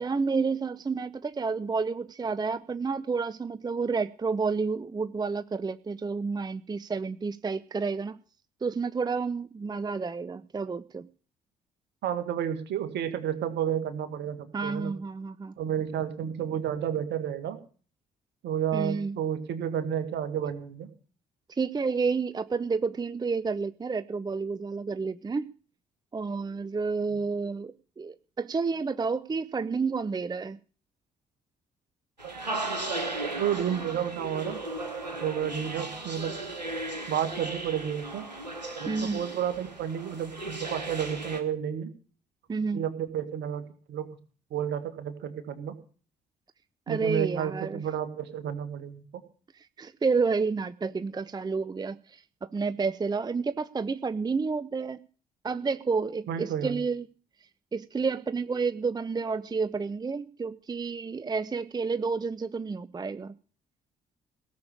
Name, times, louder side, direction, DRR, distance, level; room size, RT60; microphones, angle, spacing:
voice 1, 0.0-8.2 8.6-11.1 14.5-15.5 18.7-19.2 21.5-25.5 26.1-30.6 38.9-39.2 42.5-42.8 46.9-47.8 49.8-55.0 55.4-57.0 57.7-63.3, right 4 dB, 20° right, 15 dB, 0.6 m, -30 dB
voice 2, 12.0-14.9 15.6-17.6 18.4-20.9 32.2-32.4 33.3-34.6 35.2-36.4 37.1-38.3 38.8-41.9 42.7-44.1 44.5-45.8 46.9-49.0 56.3-56.8, right 9 dB, 55° right, 10 dB, 2.0 m, -31 dB
sound 1, 32.2-41.4, right 2 dB, 90° right, 1.5 m, -36 dB
17.5 x 6.9 x 8.6 m, 0.40 s
figure-of-eight pair, 45°, 21 cm